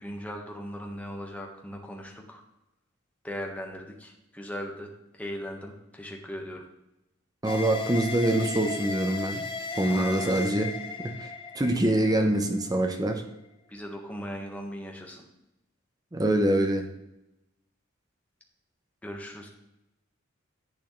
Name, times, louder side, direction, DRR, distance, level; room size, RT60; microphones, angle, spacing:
voice 1, 0.0-2.4 3.2-6.6 9.9-10.5 13.7-15.2 19.0-19.5, equal, 5° left, 1 dB, 1.3 m, -38 dB
voice 2, 7.4-9.5 9.8-11.3 11.5-13.2 16.1-16.9, right 1 dB, 20° right, 5 dB, 0.8 m, -25 dB
sound 1, 7.5-12.8, left 4 dB, 25° left, 0.7 m, -36 dB
10.5 x 8.3 x 3.2 m, 0.91 s
head